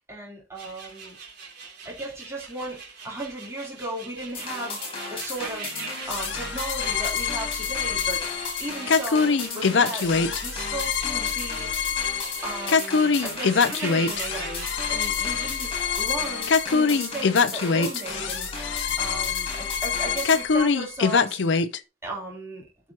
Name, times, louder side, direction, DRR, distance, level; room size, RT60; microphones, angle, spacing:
voice 1, 0.1-1.2 1.8-4.8 5.1-5.7 6.1-10.1 10.4-11.7 12.4-15.7 16.0-18.5 19.0-21.4 22.0-22.6, right 2 dB, 15° right, -3 dB, 3.5 m, -36 dB
sound 1, 0.6-15.7, right 4 dB, 55° right, 3.1 m, -42 dB
sound 2, 4.3-20.4, left 3 dB, 30° left, 4.5 m, -35 dB
sound 3, 6.1-21.8, left 5 dB, 65° left, 0.5 m, -24 dB
12.5 x 5.9 x 2.9 m, 0.30 s
head